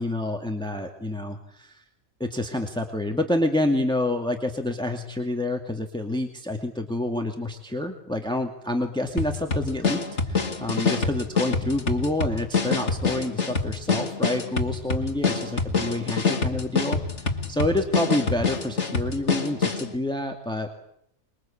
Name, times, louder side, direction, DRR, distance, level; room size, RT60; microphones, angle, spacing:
voice 1, 0.0-1.8 2.2-10.0 10.3-20.8, left 1 dB, 5° left, 4 dB, 2.2 m, -28 dB
sound 1, 9.2-19.9, left 4 dB, 55° left, 2.4 m, -26 dB
25.5 x 22.5 x 8.7 m, 0.73 s
omnidirectional pair, 1.5 m